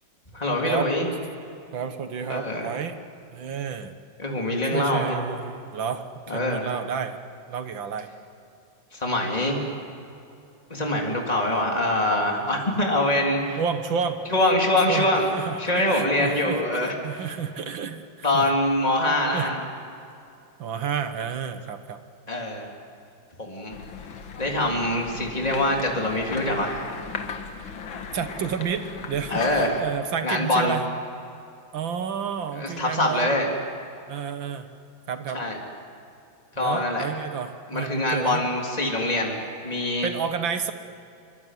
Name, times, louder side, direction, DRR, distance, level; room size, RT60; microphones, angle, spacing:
voice 1, 0.3-1.1 2.3-2.7 4.2-5.3 6.3-6.7 8.9-9.6 10.7-13.6 14.3-15.2 15.6-17.3 18.2-19.6 22.3-22.7 23.4-23.8 24.4-26.9 29.3-29.8 30.2-30.8 32.5-33.5 35.3-35.6 36.6-37.1 37.7-39.4 39.6-40.1, left 1 dB, 20° left, 0 dB, 3.7 m, -24 dB
voice 2, 1.7-3.0 3.3-3.9 4.7-7.2 7.5-8.1 13.6-14.2 14.9-18.5 19.3-19.5 20.6-22.0 28.1-30.9 31.7-33.4 34.1-34.7 35.1-35.4 36.6-38.5 40.0-40.7, right 7 dB, 75° right, 9 dB, 2.2 m, -30 dB
sound 1, 23.7-29.8, left 6 dB, 90° left, 2.3 m, -37 dB
26.0 x 23.5 x 9.5 m, 2.7 s
omnidirectional pair, 2.1 m